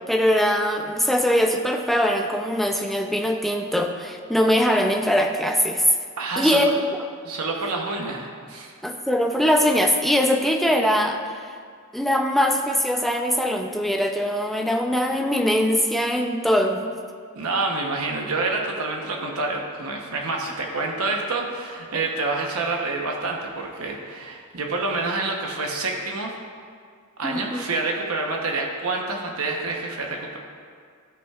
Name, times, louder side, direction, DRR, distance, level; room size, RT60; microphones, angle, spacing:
voice 1, 0.1-5.9 6.4-7.0 8.8-11.5 11.9-16.9 27.2-27.6, equal, ahead, 3 dB, 0.5 m, -22 dB
voice 2, 6.2-6.7 7.2-8.7 17.3-26.3 27.2-30.4, right 3 dB, 70° right, 1 dB, 0.9 m, -27 dB
16.0 x 5.4 x 2.4 m, 2.1 s
head